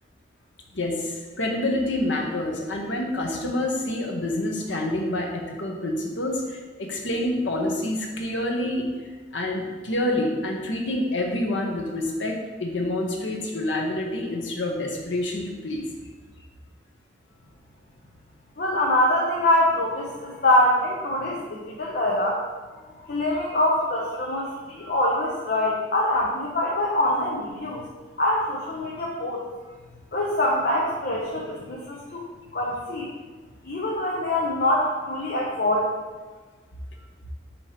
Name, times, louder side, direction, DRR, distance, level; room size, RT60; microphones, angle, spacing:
voice 1, 0.7-8.8 9.3-15.9 22.8-23.2, left 1 dB, 85° left, 1 dB, 1.1 m, -27 dB
voice 2, 18.6-22.4 23.1-27.8 28.2-29.4 30.1-32.2 32.5-33.1 33.6-35.9, left 1 dB, 55° left, -3 dB, 0.8 m, -24 dB
7.0 x 3.1 x 5.0 m, 1.4 s
head